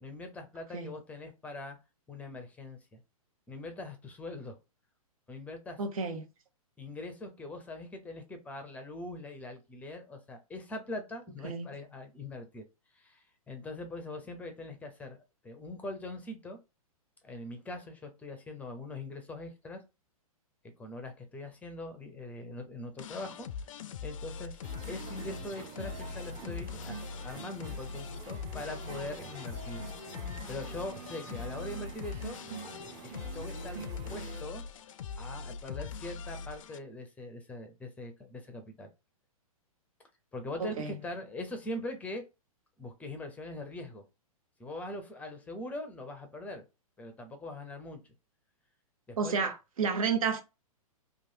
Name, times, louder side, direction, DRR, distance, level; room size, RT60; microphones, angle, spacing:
voice 1, 0.0-1.8 2.1-3.0 3.5-4.6 5.3-5.8 6.8-12.6 12.9-16.6 17.2-19.8 20.8-23.5 24.0-24.6 24.9-29.8 30.5-32.4 33.0-34.6 35.2-38.9 40.3-42.3 42.8-44.0 44.6-46.6 47.0-48.0 49.1-49.5, left 2 dB, 10° left, 0.6 m, -42 dB
voice 2, 5.8-6.2 11.4-11.7 40.6-41.0 49.2-50.4, right 5 dB, 65° right, 0.8 m, -31 dB
sound 1, 23.0-36.8, left 6 dB, 60° left, 0.4 m, -42 dB
sound 2, 24.6-34.4, right 4 dB, 20° right, 0.8 m, -46 dB
3.1 x 2.3 x 2.7 m
hypercardioid pair, 120°, 19 cm